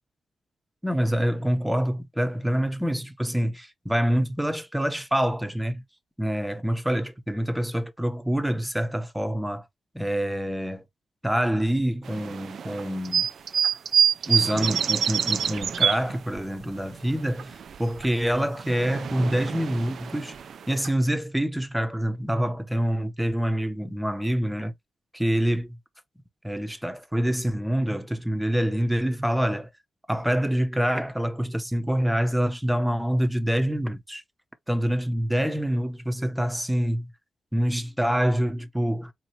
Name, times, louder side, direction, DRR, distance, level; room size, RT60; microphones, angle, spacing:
voice 1, 0.8-5.8 6.2-9.7 9.9-10.8 11.2-13.3 14.3-20.4 20.7-24.7 25.1-25.8 26.4-29.7 30.1-34.2 34.7-37.1 37.5-39.1, equal, 5° right, 0.7 m, -26 dB
sound 1, 12.1-16.6 16.9-18.1 18.3-20.9, right 7 dB, 70° right, 0.3 m, -26 dB
3.9 x 2.8 x 2.9 m
cardioid pair, 90°, 0 cm